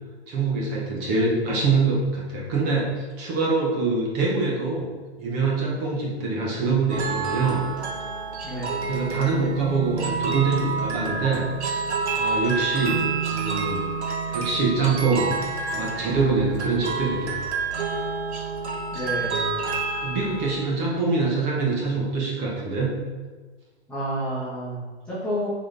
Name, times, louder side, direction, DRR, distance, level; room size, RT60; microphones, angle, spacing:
voice 1, 0.3-4.9 5.2-7.6 8.9-11.4 11.7-11.8 12.2-13.0 13.3-13.8 14.3-15.3 15.7-17.4 20.0-22.9, right 4 dB, 20° right, -3 dB, 0.9 m, -24 dB
sound 1, 6.9-20.6, right 4 dB, 70° right, 1.5 m, -28 dB
voice 2, 8.4-8.9 18.9-19.6 23.9-25.5, equal, 5° left, -13 dB, 1.3 m, -30 dB
7.4 x 4.2 x 3.4 m, 1.4 s
hypercardioid pair, 160°, 34 cm